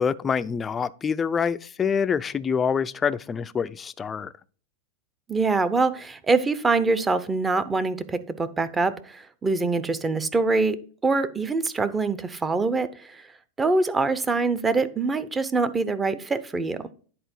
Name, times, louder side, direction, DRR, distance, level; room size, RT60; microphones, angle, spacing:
voice 1, 0.0-4.3, left 6 dB, 20° left, 0.4 m, -26 dB
voice 2, 5.3-10.8 11.0-13.3 13.6-16.8, right 3 dB, 15° right, 0.7 m, -24 dB
10.0 x 4.3 x 4.4 m
supercardioid pair, 135°, 0 cm